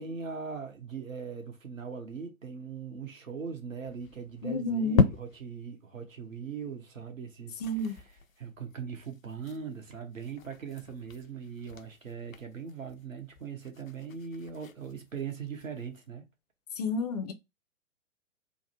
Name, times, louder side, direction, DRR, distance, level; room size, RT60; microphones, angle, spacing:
voice 1, 0.0-8.0 8.4-16.3, right 6 dB, 75° right, 1.1 m, -40 dB
sound 1, 3.8-5.7 6.1-6.2 6.5-6.6 7.0-7.1 7.4-16.1, left 5 dB, 80° left, 0.6 m, -36 dB
voice 2, 4.4-5.0 7.6-8.0 16.8-17.3, left 2 dB, 30° left, 0.4 m, -30 dB
3.7 x 2.1 x 4.3 m
figure-of-eight pair, 115°, 40 cm